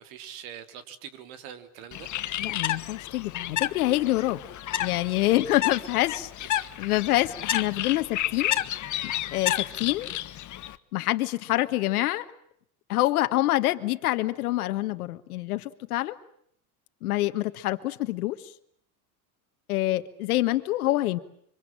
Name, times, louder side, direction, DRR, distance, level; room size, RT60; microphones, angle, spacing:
voice 1, 0.0-2.1 6.5-6.7, right 9 dB, 70° right, 10 dB, 3.4 m, -43 dB
Bird, 1.9-10.8, left 13 dB, 40° left, 1.5 m, -31 dB
voice 2, 2.4-4.4 4.8-8.6 9.3-10.1 10.9-12.2 12.9-16.1 17.0-18.4 19.7-21.2, left 16 dB, 80° left, 9 dB, 1.5 m, -26 dB
26.0 x 24.5 x 8.8 m, 0.66 s
hypercardioid pair, 85°, 44 cm